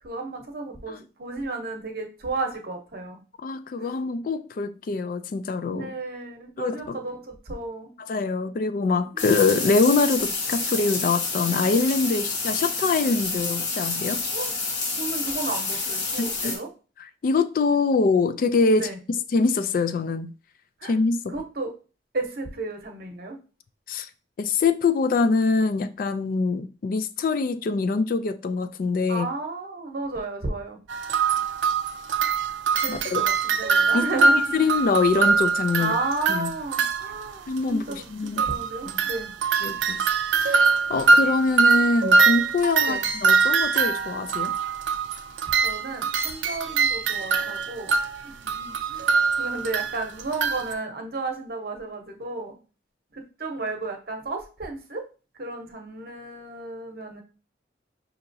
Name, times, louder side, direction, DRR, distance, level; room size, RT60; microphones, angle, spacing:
voice 1, 0.0-3.2 3.8-3.9 5.7-7.9 9.1-9.4 14.3-14.5 14.9-16.7 18.7-19.0 20.8-20.9 21.3-21.8 22.1-23.4 29.1-30.8 32.8-34.5 35.8-38.1 38.4-39.3 42.8-43.1 45.6-47.9 48.2-52.5 53.1-55.1 55.4-57.2, right 3 dB, 55° right, 0.8 m, -33 dB
voice 2, 3.4-5.9 6.6-7.0 8.1-14.2 16.2-16.5 17.2-18.9 19.3-20.3 20.8-21.3 23.9-24.1 24.4-29.3 32.9-33.2 33.9-34.1 34.5-35.9 36.3-36.5 37.5-38.4 38.9-39.0 39.6-40.0 40.4-44.5, left 4 dB, 50° left, 0.3 m, -24 dB
sound 1, 9.2-16.6, left 3 dB, 70° left, 1.2 m, -28 dB
Christmas tree music box, 30.9-37.3 37.6-37.7 37.9-38.0 38.3-50.7, right 4 dB, 85° right, 0.4 m, -23 dB
5.5 x 2.8 x 2.6 m
head